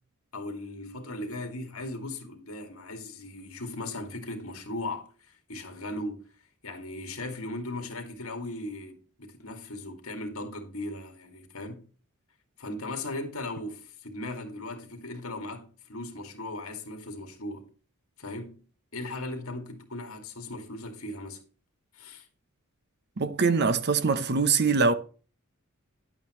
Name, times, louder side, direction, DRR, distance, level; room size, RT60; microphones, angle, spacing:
voice 1, 0.3-6.3 6.6-11.8 12.6-17.7 18.2-18.6 18.9-21.4 21.9-22.3, left 2 dB, 70° left, 2.2 m, -38 dB
voice 2, 23.2-24.9, right 4 dB, 50° right, 0.8 m, -23 dB
11.0 x 8.7 x 3.1 m
head